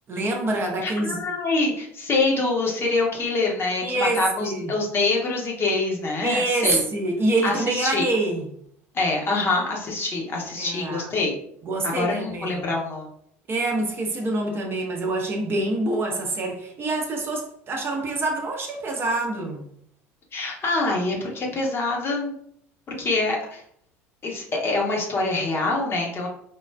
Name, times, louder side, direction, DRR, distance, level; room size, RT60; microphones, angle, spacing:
voice 1, 0.1-1.2 3.8-4.7 6.2-8.5 10.6-11.1 11.6-12.7 13.5-19.7, right 2 dB, 30° right, 1 dB, 0.7 m, -26 dB
voice 2, 0.8-6.8 7.4-8.1 8.9-11.4 11.9-13.1 20.3-22.3 23.0-23.6 24.2-26.3, left 3 dB, 30° left, -1 dB, 0.8 m, -25 dB
4.5 x 2.3 x 2.2 m, 0.69 s
figure-of-eight pair, 65°, 7 cm